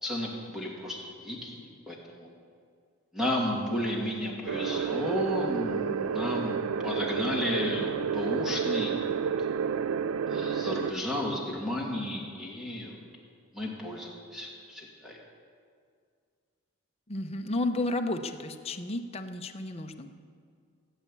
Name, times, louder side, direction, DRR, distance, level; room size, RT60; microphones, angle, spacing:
voice 1, 0.0-2.3 3.1-6.6 6.8-9.3 10.3-13.0 13.5-15.2, left 1 dB, ahead, -2 dB, 2.4 m, -33 dB
sound 1, 4.5-10.9, right 7 dB, 75° right, 0.4 m, -30 dB
voice 2, 17.1-20.1, left 2 dB, 25° left, 5 dB, 0.8 m, -32 dB
17.0 x 8.2 x 8.5 m, 2.2 s
head